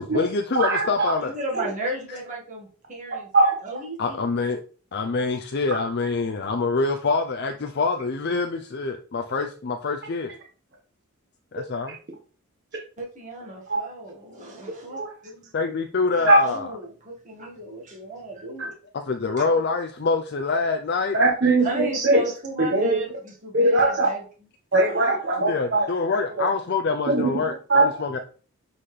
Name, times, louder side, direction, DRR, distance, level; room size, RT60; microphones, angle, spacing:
voice 1, 0.0-1.3 4.0-4.6 4.9-10.3 11.5-12.0 15.5-16.7 18.9-21.2 25.4-28.2, left 4 dB, 50° left, 4 dB, 0.5 m, -25 dB
voice 2, 0.5-1.1 3.3-3.6 13.7-13.8 14.9-15.1 16.3-16.4 18.6-18.7 21.1-22.2 22.6-23.0 23.5-24.1 24.7-25.9 27.1-27.3 27.7-27.9, right 2 dB, 50° right, 0 dB, 1.2 m, -20 dB
voice 3, 1.2-3.3 3.6-4.3 13.0-15.5 16.1-18.7 21.6-24.2, right 1 dB, 35° right, -3 dB, 1.7 m, -35 dB
7.6 x 4.1 x 3.2 m, 0.40 s
head